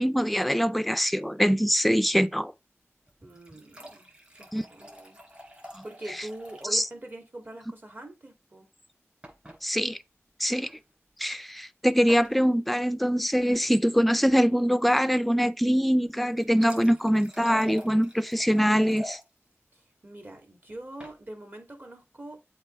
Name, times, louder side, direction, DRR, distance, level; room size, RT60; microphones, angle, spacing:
voice 1, 0.0-2.5 4.5-4.6 5.7-5.8 6.7-6.8 9.6-10.0 10.4-10.7 11.2-19.2, equal, ahead, 0.5 m, -23 dB
sound 1, 3.1-6.8 7.1-7.2 7.4-7.5 9.2-9.6 10.6-10.7 12.1-12.4 16.1-19.2 20.7-21.2, equal, 25° right, 3.7 m, -46 dB
voice 2, 3.2-4.1 4.3-5.2 5.5-8.7 19.7-22.5, right 1 dB, 40° right, 2.5 m, -43 dB
7.9 x 3.1 x 4.6 m
wide cardioid pair, 55°, 5 cm